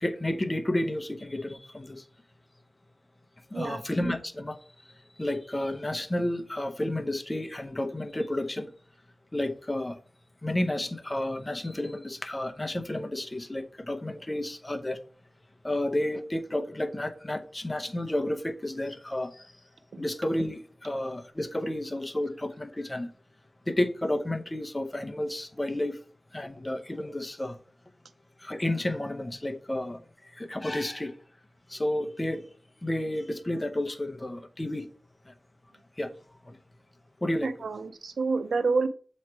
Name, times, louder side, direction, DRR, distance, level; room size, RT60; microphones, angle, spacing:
voice 1, 0.0-2.0 3.5-4.6 5.2-8.7 9.3-10.0 10.4-15.0 15.6-19.5 20.0-23.1 23.7-26.0 26.3-27.6 28.4-31.2 31.7-32.4 32.8-34.9 35.3-35.4 36.0-36.1 36.4-36.6 37.2-37.5, left 1 dB, 25° left, 0.8 m, -31 dB
voice 2, 37.4-38.9, right 4 dB, 90° right, 0.5 m, -28 dB
7.2 x 3.2 x 4.6 m
cardioid pair, 55°, 0 cm